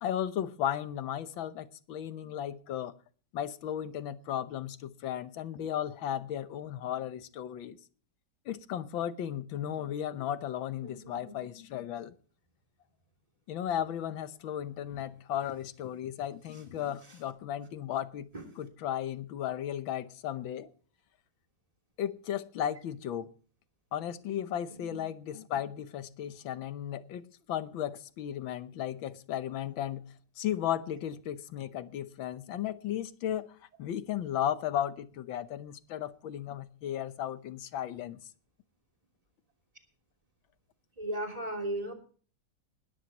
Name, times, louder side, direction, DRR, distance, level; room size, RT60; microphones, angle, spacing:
voice 1, 0.0-2.9 3.3-7.8 8.5-12.1 13.5-18.3 18.6-20.7 22.0-23.3 23.9-33.5 33.8-38.2, left 10 dB, 80° left, 1.7 m, -35 dB
voice 2, 10.8-11.4 17.1-17.2 18.3-18.4 24.7-24.8 41.0-41.9, right 1 dB, 15° right, 3.2 m, -36 dB
20.0 x 13.0 x 2.9 m
omnidirectional pair, 2.1 m